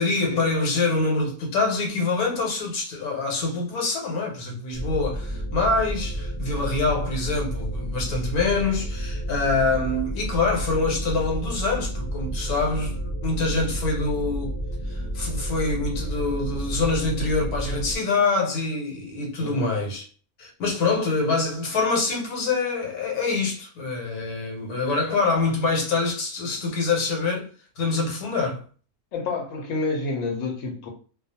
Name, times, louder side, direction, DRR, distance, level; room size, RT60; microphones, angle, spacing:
voice 1, 0.0-14.6 14.8-20.0 20.4-27.5 27.8-28.6, left 3 dB, 90° left, 1.3 m, -25 dB
sound 1, 4.7-18.0, right 1 dB, 10° right, 0.5 m, -31 dB
voice 2, 19.4-19.8 29.1-30.9, left 3 dB, 65° left, 1.0 m, -28 dB
2.4 x 2.3 x 2.7 m
omnidirectional pair, 1.6 m